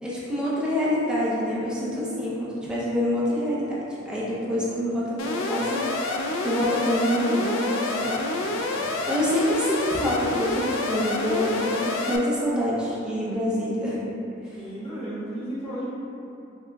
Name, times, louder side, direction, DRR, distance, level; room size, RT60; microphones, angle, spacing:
voice 1, 0.0-3.8 4.1-5.8 6.4-8.2 9.1-14.0 14.5-14.6, left 1 dB, 5° right, -8 dB, 0.5 m, -26 dB
Alarm, 5.2-12.2, left 2 dB, 80° left, 0.3 m, -28 dB
voice 2, 7.9-9.2 14.5-15.9, right 1 dB, 30° left, -10 dB, 0.7 m, -36 dB
5.7 x 2.0 x 2.2 m, 2.8 s
head